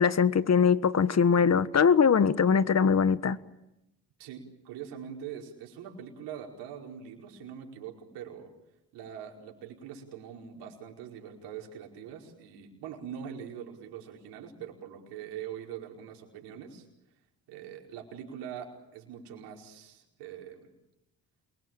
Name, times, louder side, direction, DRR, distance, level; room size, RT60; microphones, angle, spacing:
voice 1, 0.0-3.4, left 6 dB, 40° left, 14 dB, 1.4 m, -22 dB
voice 2, 4.2-8.5 8.9-16.9 17.5-20.7, right 8 dB, 90° right, 0 dB, 5.0 m, -43 dB
28.0 x 22.5 x 9.1 m, 0.89 s
supercardioid pair, 65°, 39 cm